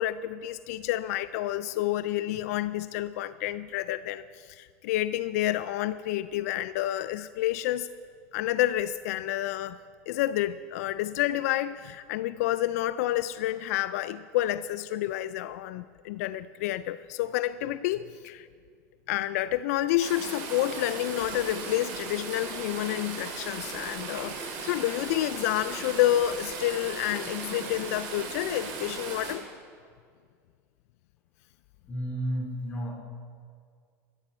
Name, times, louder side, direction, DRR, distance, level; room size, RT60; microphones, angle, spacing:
voice 1, 0.0-7.9 8.3-9.8 10.1-18.5 19.1-29.4, left 14 dB, 80° left, 15 dB, 0.3 m, -29 dB
sound 1, 20.0-29.3, right 4 dB, 65° right, 3.3 m, -37 dB
voice 2, 31.9-32.9, equal, 20° left, -1 dB, 3.8 m, -32 dB
14.0 x 13.5 x 4.3 m, 2.1 s
supercardioid pair, 115°, 8 cm